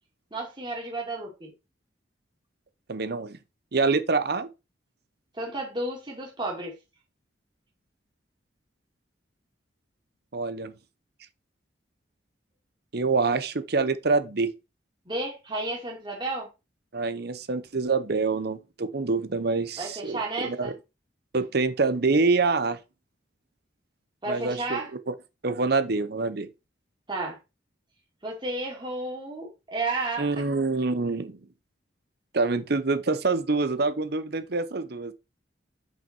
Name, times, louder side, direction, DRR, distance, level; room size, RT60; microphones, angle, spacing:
voice 1, 0.3-1.5 5.3-6.7 15.1-16.5 19.8-20.7 24.2-24.9 27.1-27.4 28.2-30.4, right 2 dB, 25° right, 2.5 m, -32 dB
voice 2, 2.9-3.4 3.7-4.5 10.3-10.7 12.9-14.5 16.9-20.2 20.4-20.7 21.3-22.8 24.3-24.8 25.1-25.2 25.4-26.5 30.2-31.4 32.3-35.1, right 3 dB, 55° right, 0.9 m, -26 dB
5.9 x 5.7 x 4.4 m
head